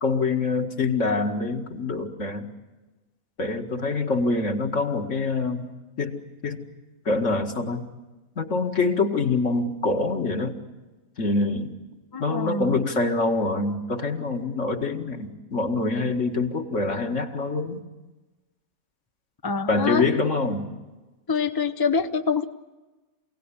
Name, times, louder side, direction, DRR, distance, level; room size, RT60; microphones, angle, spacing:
voice 1, 0.0-2.5 3.4-5.7 6.0-6.6 7.1-7.9 8.4-10.5 11.2-11.7 12.2-17.8 19.7-20.7, left 3 dB, 55° left, 3 dB, 2.3 m, -25 dB
voice 2, 12.1-12.8 19.4-20.0 21.3-22.4, left 5 dB, 25° left, 9 dB, 0.6 m, -25 dB
27.0 x 18.0 x 9.9 m, 1.2 s
omnidirectional pair, 1.5 m